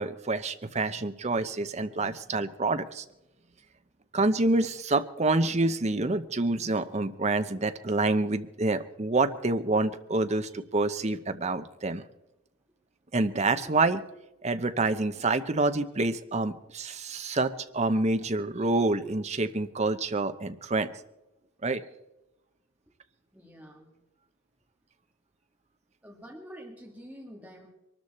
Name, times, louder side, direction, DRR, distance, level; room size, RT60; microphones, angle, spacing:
voice 1, 0.0-3.0 4.1-12.0 13.1-14.0 14.4-20.9 21.6-21.8, right 2 dB, 30° right, 10 dB, 0.7 m, -27 dB
voice 2, 23.3-23.9 26.0-27.7, equal, 5° right, 0 dB, 1.9 m, -47 dB
22.5 x 13.0 x 4.2 m, 0.94 s
head